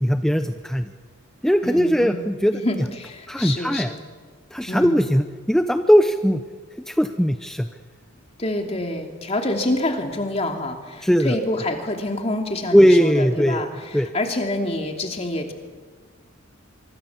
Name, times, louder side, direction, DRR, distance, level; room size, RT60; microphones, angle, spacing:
voice 1, 0.0-0.9 1.4-2.6 3.3-3.9 4.5-6.4 6.9-7.7 11.0-11.3 12.7-14.1, equal, ahead, 7 dB, 0.6 m, -19 dB
voice 2, 1.6-2.2 2.5-4.0 4.7-5.0 8.4-15.5, left 1 dB, 30° left, 3 dB, 2.8 m, -27 dB
24.5 x 24.0 x 7.3 m, 1.5 s
head